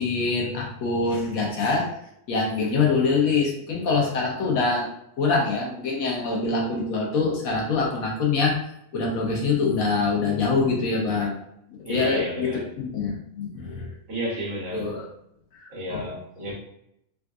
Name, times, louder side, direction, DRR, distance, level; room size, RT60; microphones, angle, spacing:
voice 1, 0.0-1.9 2.3-4.9 5.2-8.6 8.9-11.4 11.9-13.9 14.7-15.0 15.5-16.1, left 4 dB, 85° left, -2 dB, 1.3 m, -24 dB
voice 2, 11.8-12.6 14.1-14.9 15.7-16.5, equal, 65° right, -3 dB, 1.4 m, -31 dB
3.8 x 2.4 x 2.4 m, 0.77 s
omnidirectional pair, 1.4 m